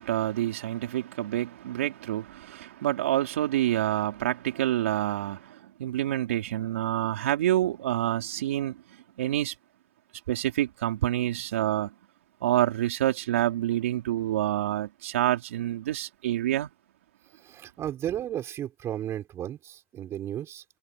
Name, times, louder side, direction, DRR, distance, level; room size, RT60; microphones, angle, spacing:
voice 1, 0.0-9.5 10.3-11.9 12.4-16.7, right 13 dB, 85° right, 4.2 m, -27 dB
voice 2, 17.4-20.6, right 11 dB, 40° right, 5.2 m, -34 dB
supercardioid pair, 110°, 7 cm